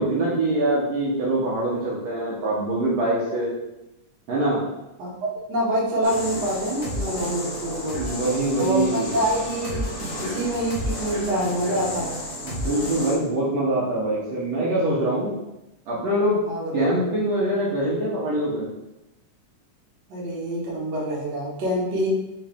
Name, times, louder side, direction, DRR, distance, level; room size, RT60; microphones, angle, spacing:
voice 1, 0.0-3.5 4.3-4.6 7.9-9.2 12.4-15.3 15.9-16.4 16.7-18.7, right 1 dB, 70° right, -6 dB, 1.9 m, -24 dB
voice 2, 5.0-8.0 8.6-9.9 10.2-12.2 16.5-16.9 20.1-22.1, right 1 dB, 50° right, -6 dB, 1.4 m, -26 dB
sound 1, 6.0-13.2, left 1 dB, 65° left, 0.8 m, -31 dB
4.9 x 3.2 x 3.4 m, 0.93 s
omnidirectional pair, 3.4 m